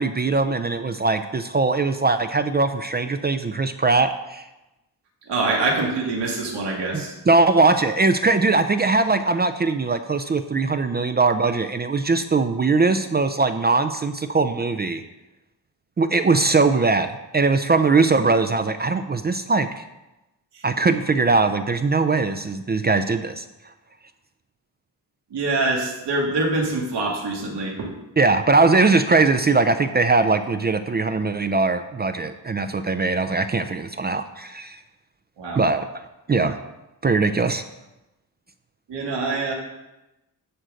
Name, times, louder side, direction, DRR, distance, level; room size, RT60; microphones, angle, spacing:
voice 1, 0.0-4.4 6.9-15.0 16.0-19.8 20.6-23.4 28.2-34.8 35.6-35.9 36.3-36.6 37.0-37.6, right 3 dB, 25° right, 9 dB, 0.3 m, -20 dB
voice 2, 5.3-7.1 20.5-20.6 25.3-27.9 35.4-35.6 38.9-39.5, right 3 dB, 85° right, -2 dB, 2.2 m, -25 dB
11.0 x 3.9 x 7.6 m, 0.98 s
wide cardioid pair, 170°, 40 cm